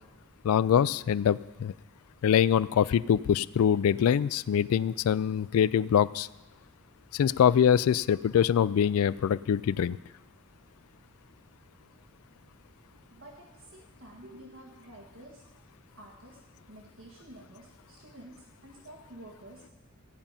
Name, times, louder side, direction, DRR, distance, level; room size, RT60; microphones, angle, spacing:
voice 1, 0.4-1.7 2.2-6.3 7.1-10.0, left 8 dB, 80° left, 19 dB, 0.3 m, -24 dB
voice 2, 13.1-15.4 15.9-16.4 16.7-19.6, right 1 dB, 60° right, -1 dB, 1.5 m, -50 dB
15.5 x 5.5 x 8.8 m, 1.1 s
head